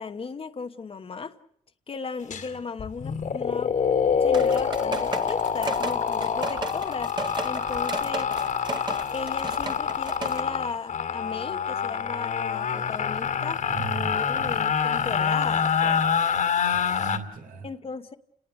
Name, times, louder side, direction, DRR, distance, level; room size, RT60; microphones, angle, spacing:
voice 1, 0.0-1.4 1.9-3.7 4.2-7.1 7.4-8.3 9.1-16.0 17.6-18.1, left 5 dB, 40° left, 7 dB, 1.2 m, -36 dB
sound 1, 2.3-2.5 2.8-17.2, left 7 dB, 60° left, 2.3 m, -26 dB
sound 2, 4.3-10.4, right 3 dB, 30° right, 2.0 m, -35 dB
voice 2, 13.7-14.5 16.6-17.7, right 5 dB, 75° right, 6 dB, 3.8 m, -38 dB
29.5 x 19.0 x 6.6 m, 0.70 s
cardioid pair, 90°, 14 cm